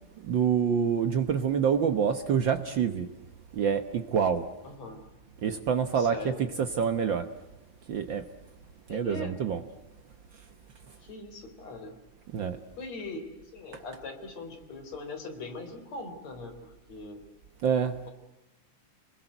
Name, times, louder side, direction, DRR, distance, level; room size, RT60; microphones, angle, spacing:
voice 1, 0.2-3.1 3.5-4.5 5.4-7.3 7.9-8.2 8.9-9.6 12.3-12.6 17.6-17.9, right 7 dB, 85° right, 9 dB, 1.0 m, -26 dB
voice 2, 4.6-5.0 5.9-6.4 8.9-9.3 11.0-11.9 12.8-17.2, left 3 dB, 55° left, 7 dB, 5.0 m, -41 dB
27.5 x 21.5 x 8.0 m, 0.98 s
omnidirectional pair, 3.7 m